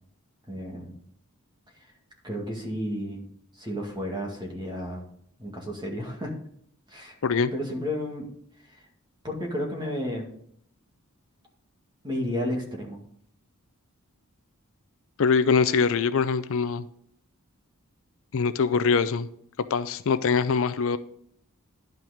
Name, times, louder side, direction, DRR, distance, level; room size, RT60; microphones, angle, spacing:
voice 1, 0.5-0.9 2.2-3.2 3.6-5.1 5.4-6.3 6.9-7.2 7.5-8.3 8.7-8.8 9.2-10.3 12.0-13.0, equal, 20° right, 1 dB, 2.1 m, -32 dB
voice 2, 15.2-16.8 18.3-19.3 19.7-21.0, left 5 dB, 65° left, 13 dB, 0.5 m, -23 dB
11.0 x 5.9 x 5.1 m, 0.66 s
head